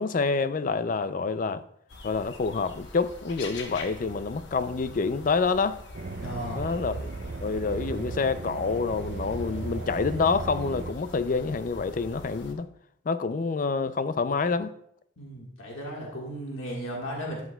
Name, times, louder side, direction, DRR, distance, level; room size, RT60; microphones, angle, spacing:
voice 1, 0.0-1.6 2.0-5.8 6.5-7.1 7.4-12.7 13.1-14.7, left 4 dB, 40° left, 0.4 m, -27 dB
sound 1, 1.9-12.5, left 2 dB, 60° left, 1.1 m, -45 dB
sound 2, 5.9-10.9, right 3 dB, 50° right, 0.5 m, -36 dB
voice 2, 6.2-6.6 15.2-17.4, equal, 90° left, 1.6 m, -35 dB
12.0 x 8.0 x 2.3 m
head